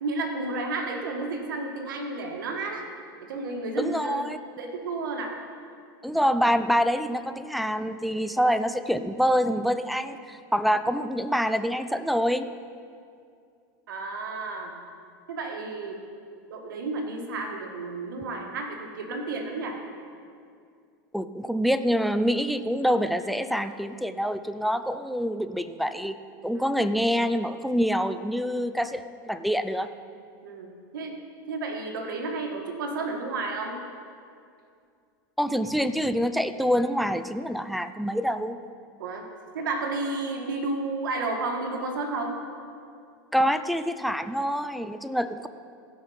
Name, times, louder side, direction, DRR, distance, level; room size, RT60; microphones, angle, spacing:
voice 1, 0.0-2.8 3.2-4.2 4.6-5.4 13.9-14.7 15.3-16.0 16.5-19.8 26.5-26.6 30.4-31.2 31.5-33.8 39.0-39.2 39.5-42.4, right 3 dB, 90° right, 3 dB, 1.6 m, -32 dB
voice 2, 3.8-4.4 6.0-12.5 21.1-26.2 26.4-29.9 35.4-38.6 43.3-45.5, equal, ahead, 11 dB, 0.4 m, -26 dB
15.5 x 5.5 x 5.6 m, 2.3 s
supercardioid pair, 120°, 11 cm